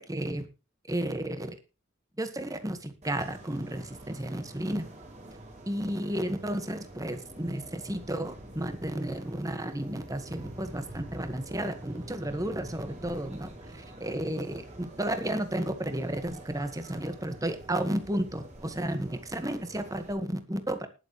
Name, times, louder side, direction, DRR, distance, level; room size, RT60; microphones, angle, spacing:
voice 1, 0.1-0.5 0.9-1.6 2.2-4.9 5.7-20.9, right 1 dB, 15° right, 8 dB, 1.7 m, -33 dB
sound 1, 3.0-20.1, right 1 dB, 35° right, 4.6 m, -47 dB
20.0 x 7.4 x 3.3 m, 0.30 s
head